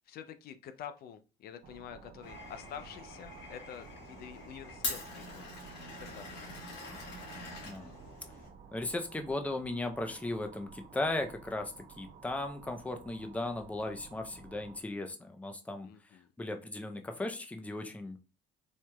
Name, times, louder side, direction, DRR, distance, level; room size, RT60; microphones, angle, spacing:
voice 1, 0.1-5.5 5.8-6.4 15.8-16.3, left 9 dB, 65° left, 0.4 m, -48 dB
sound 1, 1.6-14.8, right 5 dB, 55° right, 0.8 m, -54 dB
Glass, 2.2-8.5, left 3 dB, 80° left, 1.8 m, -44 dB
voice 2, 7.6-7.9 8.7-18.2, left 2 dB, 10° left, 0.5 m, -37 dB
4.4 x 2.8 x 2.3 m
cardioid pair, 110°, 17 cm